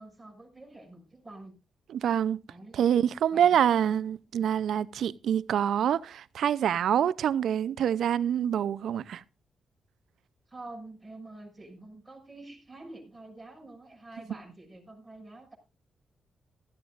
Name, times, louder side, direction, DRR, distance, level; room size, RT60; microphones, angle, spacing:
voice 1, 0.0-1.5 2.5-2.8 3.3-3.7 10.5-15.6, right 2 dB, 10° right, 6.3 m, -47 dB
voice 2, 1.9-2.4 2.7-9.2, right 9 dB, 75° right, 0.5 m, -26 dB
16.0 x 13.0 x 2.5 m
cardioid pair, 75°, 0 cm